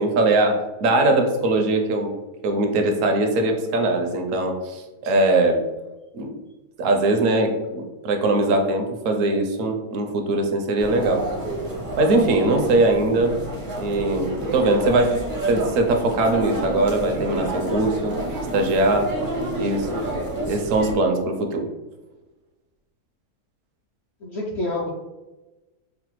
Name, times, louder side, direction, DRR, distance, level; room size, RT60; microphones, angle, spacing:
voice 1, 0.0-2.1 2.4-5.6 6.1-6.3 6.8-11.2 12.0-13.4 13.8-18.2 18.5-19.2 19.6-19.9 20.4-21.7, right 2 dB, 70° right, 4 dB, 0.9 m, -21 dB
sound 1, 10.8-20.9, right 1 dB, 30° right, 0.4 m, -29 dB
voice 2, 24.2-24.9, left 2 dB, 70° left, -2 dB, 0.6 m, -28 dB
4.8 x 2.1 x 3.0 m, 1.1 s
omnidirectional pair, 1.6 m